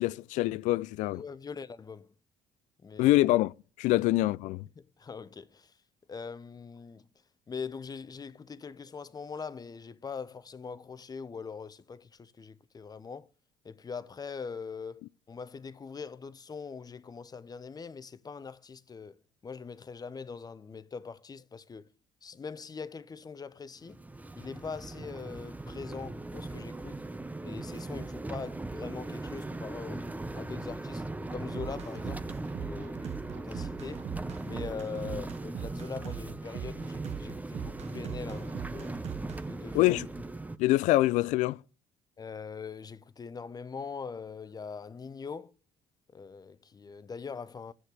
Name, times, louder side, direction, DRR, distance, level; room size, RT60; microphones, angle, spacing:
voice 1, 0.0-1.2 3.0-3.5 3.8-4.7 39.7-40.1 40.6-41.6, left 17 dB, 70° left, 0.4 m, -25 dB
voice 2, 1.1-2.1 2.8-3.2 3.9-4.1 4.8-5.7 6.1-7.1 7.5-13.3 13.6-19.2 19.4-21.9 22.2-24.0 24.4-27.0 27.4-30.0 30.3-31.0 31.3-34.0 34.4-39.0 39.4-40.0 42.2-45.5 46.1-47.7, left 5 dB, 30° left, 0.9 m, -42 dB
sound 1, 23.8-40.6, right 2 dB, 10° right, 0.7 m, -39 dB
sound 2, 31.5-39.4, right 9 dB, 60° right, 0.8 m, -41 dB
7.7 x 6.7 x 8.1 m
hypercardioid pair, 65°, 13 cm